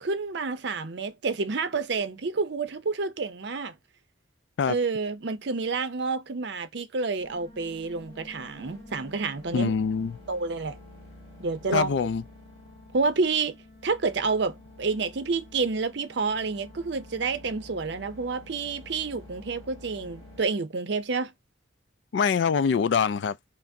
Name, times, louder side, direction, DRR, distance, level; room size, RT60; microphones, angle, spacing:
voice 1, 0.0-3.8 4.6-9.7 10.3-10.8 11.4-12.1 12.9-13.6 13.8-21.3, right 4 dB, 60° right, 0.6 m, -29 dB
sound 1, 7.2-20.4, left 1 dB, 30° left, 1.6 m, -49 dB
voice 2, 9.5-10.1 11.7-12.2 22.1-23.4, left 6 dB, 60° left, 0.3 m, -24 dB
5.7 x 2.0 x 2.6 m
head